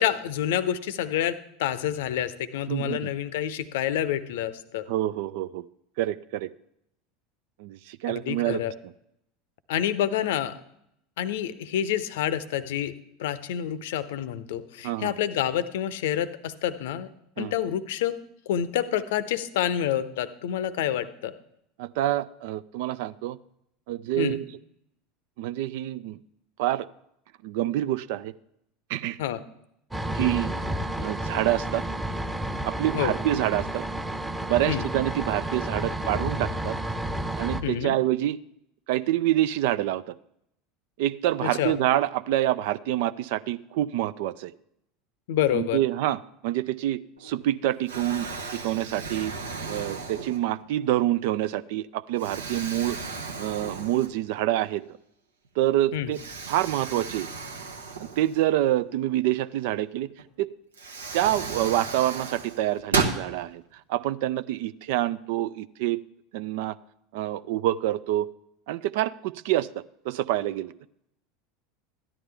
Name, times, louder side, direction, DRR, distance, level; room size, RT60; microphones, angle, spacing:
voice 1, 0.0-4.9 8.1-8.7 9.7-10.5 11.2-12.9 13.2-17.1 17.4-18.2 18.5-21.3 24.2-24.4 29.2-29.4 32.9-33.1 34.7-34.9 37.6-37.9 41.4-41.8 45.3-45.8 55.9-56.1, left 10 dB, 65° left, 15 dB, 0.6 m, -28 dB
voice 2, 2.7-3.0 4.9-5.6 6.0-6.5 7.6-8.6 14.8-15.1 17.4-17.5 21.8-23.4 23.9-24.4 25.4-26.2 26.6-26.9 27.4-28.3 28.9-29.2 30.1-30.5 31.0-31.8 32.6-33.8 34.5-36.8 37.4-38.4 38.9-40.1 41.0-44.5 45.5-49.3 49.7-53.0 53.4-54.8 55.6-56.2 56.5-57.3 58.0-60.1 60.4-60.5 61.1-63.6 63.9-66.0 66.3-66.8 67.1-68.3 68.7-70.7, right 14 dB, 60° right, 17 dB, 0.3 m, -27 dB
sound 1, 29.9-37.6, right 1 dB, 10° right, 0.9 m, -31 dB
Explosion, 47.2-47.5 47.9-50.7 51.3-51.5 52.2-54.4 54.8-54.9 56.1-58.8 60.2-60.3 60.7-63.2, right 4 dB, 75° right, 0.9 m, -34 dB
13.5 x 11.0 x 3.4 m, 0.77 s
figure-of-eight pair, 75°, 0 cm